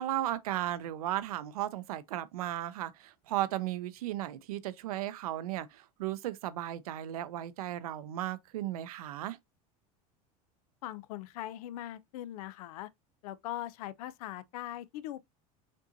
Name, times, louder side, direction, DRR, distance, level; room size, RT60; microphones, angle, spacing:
voice 1, 0.0-9.4, right 13 dB, 90° right, 0.5 m, -35 dB
voice 2, 10.8-12.9 13.2-15.3, left 13 dB, 80° left, 0.5 m, -41 dB
5.2 x 2.7 x 2.6 m
supercardioid pair, 100°, 18 cm